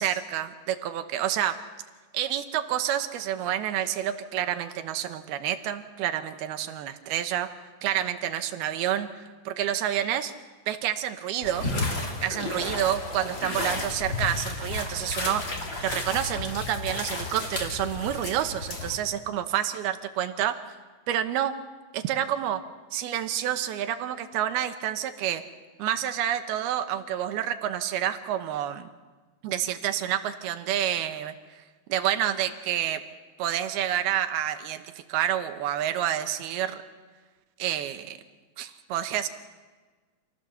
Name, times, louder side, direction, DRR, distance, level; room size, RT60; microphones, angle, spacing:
voice 1, 0.0-1.6 2.1-7.5 7.8-10.3 10.7-11.7 12.2-15.4 15.8-20.6 21.1-21.5 21.9-22.6 22.9-25.4 25.8-28.9 29.4-31.3 31.9-33.0 33.4-36.8 37.6-38.2 38.6-39.3, right 11 dB, 85° right, 8 dB, 3.0 m, -28 dB
sound 1, 11.4-19.0, left 2 dB, 30° left, 3.4 m, -32 dB
27.5 x 15.5 x 6.9 m, 1.4 s
omnidirectional pair, 4.4 m